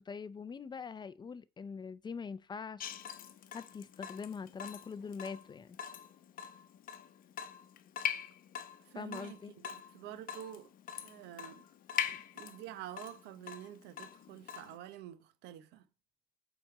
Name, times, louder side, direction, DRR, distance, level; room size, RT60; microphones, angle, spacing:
voice 1, 0.0-3.0 3.5-5.8 8.9-9.5 12.1-12.2, left 5 dB, 25° left, 0.5 m, -43 dB
Water tap faucet / Drip, 2.8-14.8, left 9 dB, 55° left, 0.8 m, -43 dB
voice 2, 8.8-10.7 11.0-11.6 12.3-15.9, right 12 dB, 90° right, 0.9 m, -48 dB
7.9 x 4.2 x 4.8 m
cardioid pair, 110°, 17 cm